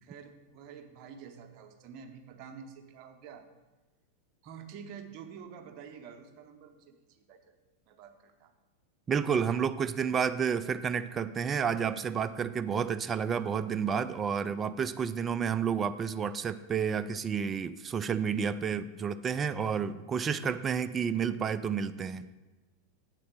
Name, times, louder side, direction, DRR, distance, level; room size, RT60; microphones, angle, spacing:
voice 1, 0.0-3.5 4.4-7.6 7.9-8.5, right 7 dB, 40° right, 5 dB, 0.8 m, -48 dB
voice 2, 9.1-22.3, right 7 dB, 20° right, 12 dB, 0.3 m, -30 dB
8.2 x 4.3 x 6.2 m, 1.2 s
figure-of-eight pair, 90°, 0 cm